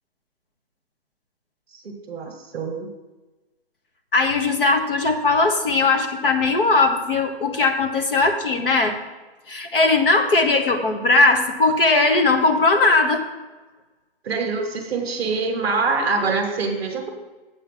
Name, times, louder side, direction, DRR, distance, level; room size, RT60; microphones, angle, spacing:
voice 1, 1.7-2.9 14.2-17.1, right 4 dB, 10° right, 1 dB, 1.2 m, -25 dB
voice 2, 4.1-8.9 9.5-13.2, left 3 dB, 60° left, 5 dB, 1.4 m, -19 dB
7.6 x 6.0 x 7.4 m, 1.2 s
hypercardioid pair, 170°, 31 cm